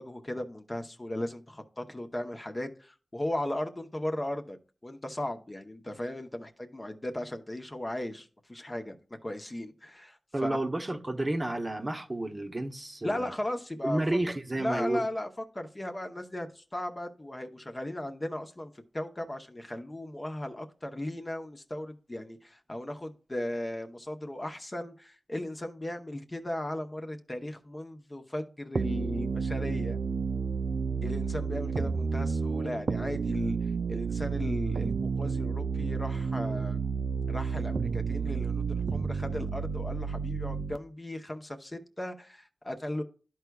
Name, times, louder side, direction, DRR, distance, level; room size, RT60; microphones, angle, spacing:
voice 1, 0.0-4.6 4.8-9.0 9.2-10.6 13.0-14.0 14.5-15.3 15.5-30.0 31.0-36.8 37.3-43.0, left 1 dB, 25° left, 0.8 m, -36 dB
voice 2, 10.3-13.3 13.8-15.1, right 1 dB, 25° right, 0.8 m, -31 dB
sound 1, 28.8-40.8, right 5 dB, 70° right, 0.3 m, -31 dB
12.5 x 4.6 x 2.3 m
wide cardioid pair, 105°, 0 cm